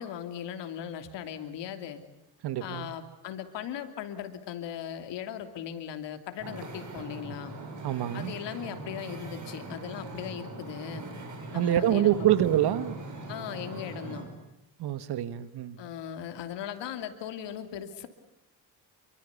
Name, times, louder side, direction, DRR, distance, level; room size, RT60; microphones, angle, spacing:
voice 1, 0.0-2.0 2.6-7.5 8.1-11.0 11.5-12.3 13.3-14.3 15.8-18.1, left 9 dB, 80° left, 8 dB, 3.1 m, -38 dB
voice 2, 2.4-2.9 7.8-8.3 11.5-13.0 14.8-15.8, right 12 dB, 65° right, 13 dB, 1.5 m, -26 dB
Wind / Ocean, 6.4-14.3, right 2 dB, 45° right, 7.9 m, -41 dB
28.5 x 23.5 x 8.4 m, 0.82 s
cardioid pair, 145°, 42 cm